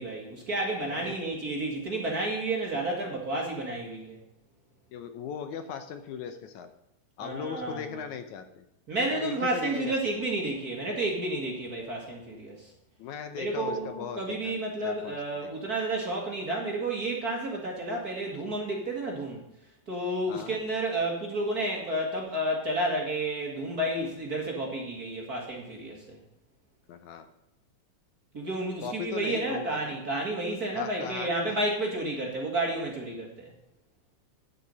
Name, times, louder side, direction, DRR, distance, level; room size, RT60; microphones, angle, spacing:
voice 1, 0.0-4.2 7.2-7.8 8.9-12.7 13.4-19.4 19.9-26.2 28.3-33.5, right 1 dB, 35° right, -1 dB, 1.7 m, -31 dB
voice 2, 4.9-6.7 7.2-8.7 9.1-10.2 13.0-14.6 14.8-15.5 20.3-20.6 26.9-27.3 28.8-30.0 30.7-31.6, left 7 dB, 75° left, 8 dB, 2.1 m, -38 dB
10.5 x 6.9 x 5.5 m, 0.86 s
omnidirectional pair, 3.7 m